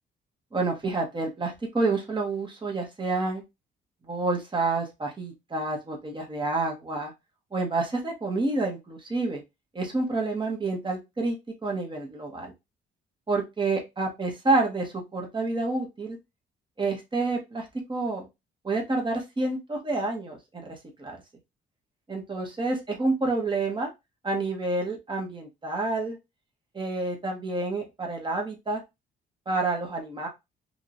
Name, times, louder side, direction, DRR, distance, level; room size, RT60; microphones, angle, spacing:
voice 1, 0.5-3.4 4.1-7.1 7.5-9.4 9.7-11.4 11.6-12.5 13.3-16.2 16.8-18.3 18.6-21.2 22.1-23.9 24.2-26.2 26.7-28.8 29.5-30.3, right 3 dB, 25° right, 1 dB, 1.3 m, -28 dB
3.1 x 2.7 x 2.6 m, 0.22 s
cardioid pair, 90°, 20 cm